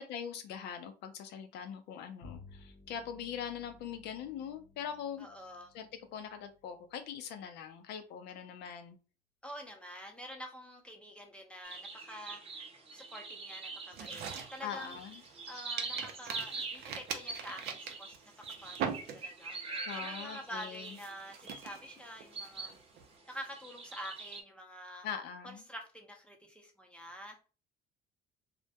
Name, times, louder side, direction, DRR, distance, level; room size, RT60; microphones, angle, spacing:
voice 1, 0.0-5.3 5.7-9.0 14.6-15.2 19.9-21.0 25.0-25.6, left 8 dB, 80° left, 7 dB, 0.4 m, -42 dB
Bowed string instrument, 2.2-7.9, left 3 dB, 55° left, 0.7 m, -58 dB
voice 2, 5.2-5.7 9.4-12.7 12.9-15.0 15.5-22.7 23.3-25.1 25.4-27.5, equal, 5° left, 2 dB, 0.6 m, -47 dB
sound 1, 11.6-22.8 23.2-24.4, right 4 dB, 35° right, 0.8 m, -44 dB
sound 2, 13.9-15.4 15.8-19.6 19.9-20.3 20.7-23.1, right 7 dB, 70° right, 0.5 m, -42 dB
2.2 x 2.1 x 2.7 m, 0.34 s
cardioid pair, 110°, 17 cm